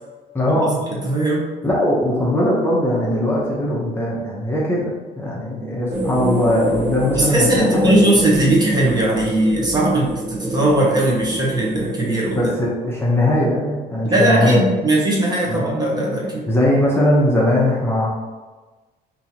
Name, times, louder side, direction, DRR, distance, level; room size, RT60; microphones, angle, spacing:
voice 1, 0.3-0.8 1.6-4.9 5.2-7.9 12.3-14.6 15.4-15.7 16.5-18.1, left 1 dB, 15° left, -5 dB, 0.8 m, -19 dB
voice 2, 0.9-1.4 7.1-12.5 14.1-16.4, right 1 dB, 25° right, -4 dB, 0.9 m, -19 dB
sound 1, 5.9-12.4, right 1 dB, 5° right, 0.4 m, -25 dB
3.7 x 2.8 x 2.9 m, 1.3 s
cardioid pair, 110°, 17 cm